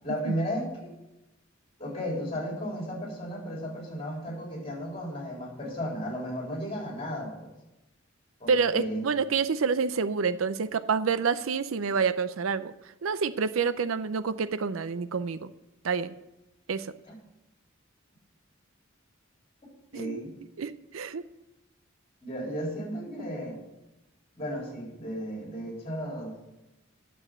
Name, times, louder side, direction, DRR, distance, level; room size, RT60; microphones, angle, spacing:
voice 1, 0.0-0.9 1.8-7.5 8.4-9.0 17.1-17.2 19.9-20.3 22.2-23.6 24.3-26.3, equal, 30° left, -2 dB, 3.9 m, -34 dB
voice 2, 8.5-12.7 13.0-15.5 15.8-16.1 16.7-16.9 19.9-20.2 20.6-21.2, right 5 dB, 80° right, 14 dB, 0.5 m, -28 dB
9.8 x 7.0 x 7.8 m, 0.97 s
head